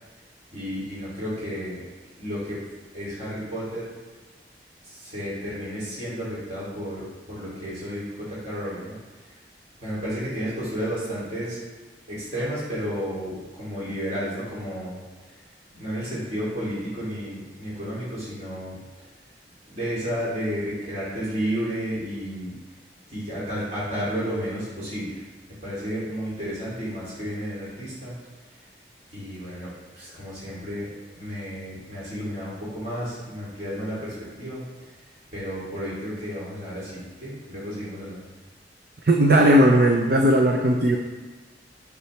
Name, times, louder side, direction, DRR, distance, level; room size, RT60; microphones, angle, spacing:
voice 1, 0.5-1.8 2.2-2.6 2.9-3.9 4.8-7.0 7.3-9.4 9.8-11.6 12.1-15.0 15.3-15.4 15.7-18.8 19.7-22.5 23.1-25.2 25.6-28.1 29.1-34.6 35.0-38.2, equal, 40° right, -9 dB, 2.8 m, -32 dB
voice 2, 39.0-41.0, right 1 dB, 60° right, 2 dB, 0.6 m, -17 dB
9.7 x 6.9 x 3.3 m, 1.3 s
head